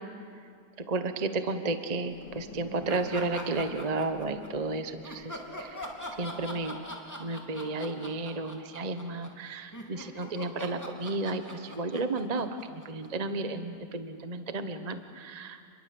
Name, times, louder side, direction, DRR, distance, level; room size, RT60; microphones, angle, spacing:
voice 1, 0.9-5.8 6.2-6.8 7.2-15.6, right 3 dB, 25° right, 8 dB, 1.0 m, -33 dB
sound 1, 2.1-6.7, left 1 dB, 75° left, 4.8 m, -49 dB
sound 2, 2.9-4.5 5.0-13.3, left 1 dB, 10° left, 3.1 m, -41 dB
29.0 x 22.5 x 7.8 m, 2.3 s
omnidirectional pair, 1.8 m